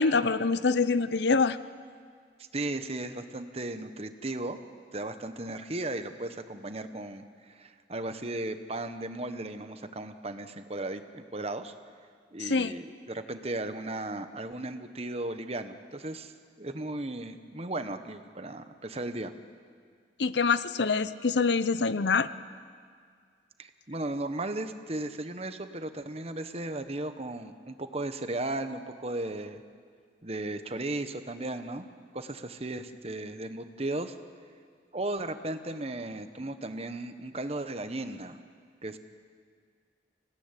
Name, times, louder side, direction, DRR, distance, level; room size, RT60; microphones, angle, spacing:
voice 1, 0.0-1.6 12.4-12.7 20.2-22.3, left 4 dB, 80° left, 14 dB, 0.7 m, -25 dB
voice 2, 2.5-4.6 4.9-11.7 12.3-16.3 16.6-19.3 23.6-29.6 30.2-31.8 32.1-34.1 34.9-38.4 38.8-39.0, right 2 dB, 35° right, 9 dB, 1.2 m, -36 dB
25.0 x 17.5 x 9.9 m, 2.1 s
head